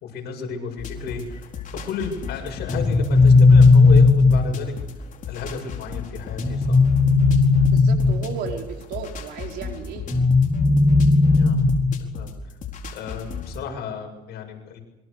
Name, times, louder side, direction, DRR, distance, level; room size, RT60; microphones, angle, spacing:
voice 1, 0.0-1.5 1.7-4.7 5.3-6.8 11.3-11.7 12.0-12.3 12.9-14.8, left 6 dB, 75° left, 2 dB, 7.7 m, -33 dB
sound 1, 0.8-13.6, left 6 dB, 50° left, 4.5 m, -31 dB
sound 2, 2.7-4.7 6.4-8.4 10.1-12.1, left 3 dB, ahead, 7.4 m, -16 dB
voice 2, 7.7-10.1, right 7 dB, 80° right, 2 dB, 5.1 m, -34 dB
27.0 x 24.5 x 6.9 m, 0.98 s
cardioid pair, 110°, 17 cm